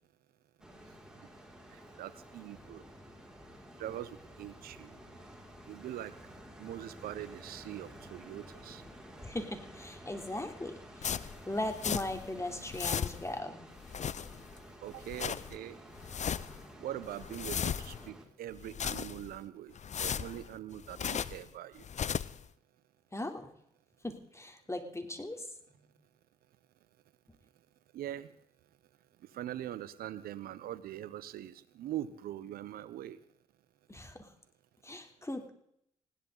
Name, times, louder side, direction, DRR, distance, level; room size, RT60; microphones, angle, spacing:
sound 1, 0.6-18.2, equal, 5° right, 5.8 m, -52 dB
voice 1, 2.0-2.8 3.8-4.9 5.7-6.1 6.6-8.8 14.8-15.8 16.8-19.7 20.0-21.8 27.9-28.3 29.3-33.2, right 12 dB, 75° right, 16 dB, 1.0 m, -42 dB
voice 2, 9.2-13.7 23.1-23.5 24.0-25.4 33.9-34.3 34.8-35.5, left 1 dB, 20° left, 5 dB, 3.4 m, -39 dB
sound 2, 11.0-12.3 12.6-13.4 13.8-14.6 14.9-15.6 16.0-16.6 17.0-18.1 18.5-19.4 19.8-21.5 21.8-22.4, left 8 dB, 50° left, 0.7 m, -36 dB
20.0 x 16.5 x 4.0 m, 0.73 s
hypercardioid pair, 40°, 16 cm